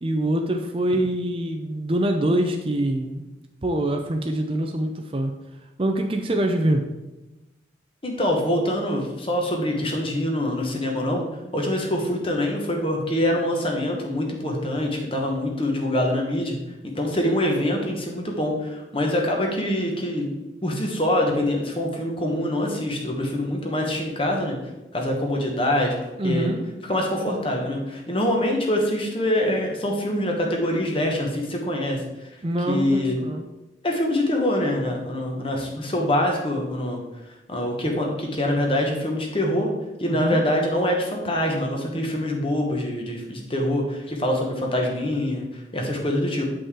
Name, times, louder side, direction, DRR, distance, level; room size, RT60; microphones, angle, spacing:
voice 1, 0.0-3.2 3.6-5.3 5.8-6.8 26.2-26.6 32.4-33.5 40.1-40.4, right 1 dB, 30° right, 4 dB, 0.5 m, -24 dB
voice 2, 8.0-11.3 11.5-16.6 16.9-20.3 20.6-24.6 24.9-26.0 26.2-26.5 26.9-32.0 32.7-33.2 33.8-37.0 37.5-39.7 40.0-46.4, left 1 dB, 30° left, 1 dB, 1.2 m, -24 dB
8.3 x 5.3 x 3.7 m, 1.0 s
head